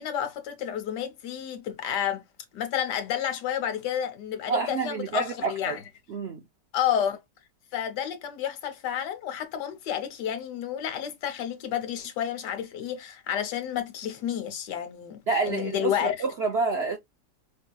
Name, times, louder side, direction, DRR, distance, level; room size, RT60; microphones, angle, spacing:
voice 1, 0.0-2.2 2.5-5.8 6.7-7.2 7.7-16.2, left 9 dB, 75° left, 1.4 m, -30 dB
voice 2, 4.5-5.8 6.1-6.4 15.3-17.0, right 4 dB, 65° right, 0.6 m, -28 dB
5.1 x 2.8 x 2.2 m
omnidirectional pair, 1.9 m